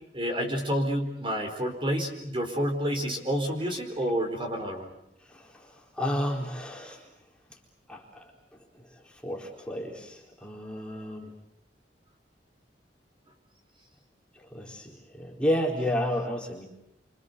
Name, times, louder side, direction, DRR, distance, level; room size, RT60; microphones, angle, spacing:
voice 1, 0.1-4.9, equal, 30° right, 3 dB, 4.5 m, -29 dB
voice 2, 5.2-7.1 7.9-11.3 14.3-16.7, equal, 5° left, -1 dB, 4.1 m, -32 dB
29.0 x 26.5 x 6.8 m, 0.80 s
head